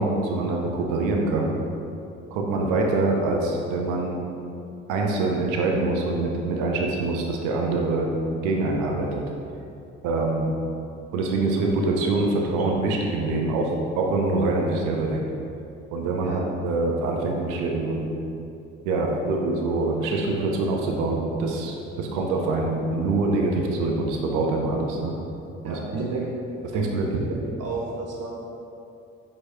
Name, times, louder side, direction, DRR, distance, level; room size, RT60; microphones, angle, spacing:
voice 1, 0.0-1.6 2.3-4.2 4.9-8.1 8.4-9.2 10.0-10.5 11.1-15.2 15.9-18.1 18.9-25.1 25.6-26.2 26.7-27.3, right 2 dB, 80° right, 0 dB, 0.6 m, -25 dB
voice 2, 25.6-26.3 26.7-28.3, right 3 dB, 55° right, -3 dB, 1.0 m, -34 dB
4.5 x 3.0 x 2.7 m, 2.7 s
hypercardioid pair, 60°, 30 cm